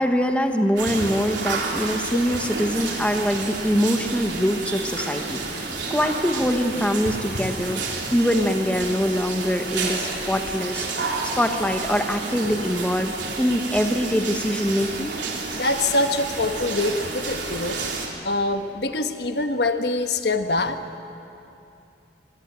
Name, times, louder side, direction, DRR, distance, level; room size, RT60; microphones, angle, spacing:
voice 1, 0.0-7.8 8.1-15.2, equal, 5° left, 5 dB, 1.1 m, -24 dB
sound 1, 0.8-18.1, right 3 dB, 85° right, 3.5 m, -30 dB
voice 2, 15.5-17.8 18.2-21.0, left 2 dB, 65° left, 7 dB, 1.3 m, -24 dB
24.5 x 18.5 x 9.2 m, 2.7 s
head